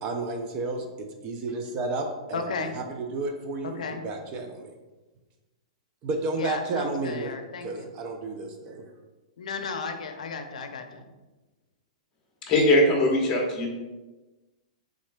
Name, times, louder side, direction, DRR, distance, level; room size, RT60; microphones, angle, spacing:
voice 1, 0.0-4.7 6.0-7.3 7.6-8.9, right 3 dB, 30° right, 4 dB, 0.5 m, -32 dB
voice 2, 2.3-2.7 3.6-4.0 6.3-7.9 9.4-11.1, left 4 dB, 85° left, 6 dB, 0.5 m, -34 dB
voice 3, 12.5-13.7, left 1 dB, 20° left, 0 dB, 1.1 m, -21 dB
6.1 x 3.6 x 2.2 m, 1.2 s
hypercardioid pair, 155°, 4 cm